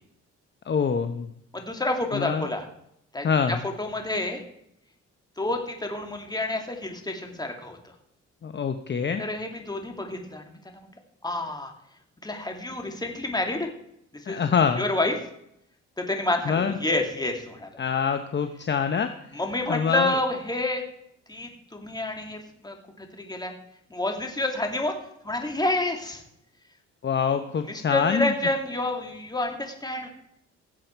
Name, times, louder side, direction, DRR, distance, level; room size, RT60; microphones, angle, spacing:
voice 1, 0.7-1.3 2.1-2.5 3.2-3.6 8.4-9.2 14.3-14.8 16.5-16.8 17.8-19.1 19.7-20.2 27.0-28.3, left 6 dB, 35° left, 8 dB, 0.9 m, -25 dB
voice 2, 1.5-2.7 3.1-4.4 5.4-7.8 9.2-10.9 11.2-11.7 12.2-13.7 14.1-14.4 14.8-15.2 16.0-17.7 19.3-20.8 21.3-23.5 23.9-25.0 25.2-26.2 27.7-30.1, left 2 dB, 15° left, 3 dB, 2.4 m, -29 dB
17.5 x 7.7 x 4.5 m, 0.75 s
cardioid pair, 90°, 30 cm